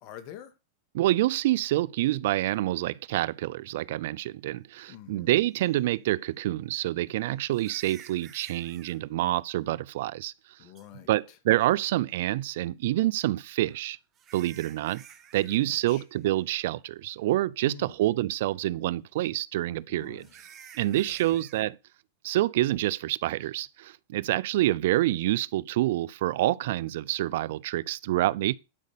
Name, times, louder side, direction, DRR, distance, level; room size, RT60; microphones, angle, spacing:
voice 1, 0.0-0.5 4.9-5.3 10.6-11.4 15.6-16.0 17.6-18.0 19.9-20.4 20.9-21.2, left 10 dB, 50° left, 2.2 m, -47 dB
voice 2, 0.9-10.3 11.1-14.0 14.3-15.0 15.3-20.2 20.8-21.8 22.2-28.6, right 15 dB, 65° right, 0.5 m, -27 dB
sound 1, 5.6-5.7 7.5-9.0 10.7-10.9 13.4-15.6 15.8-16.2 16.6-16.7 17.3-17.4 20.2-21.7, right 8 dB, 30° right, 1.7 m, -51 dB
12.0 x 5.3 x 6.7 m
hypercardioid pair, 115°, 0 cm